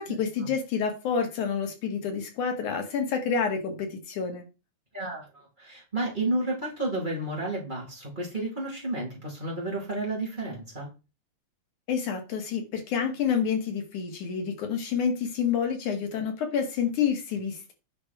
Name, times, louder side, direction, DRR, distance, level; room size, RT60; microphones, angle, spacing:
voice 1, 0.0-4.4 11.9-17.7, left 6 dB, 85° left, 3.5 m, -28 dB
voice 2, 4.9-10.9, right 2 dB, 15° right, 3.7 m, -31 dB
10.0 x 5.8 x 4.6 m
omnidirectional pair, 3.4 m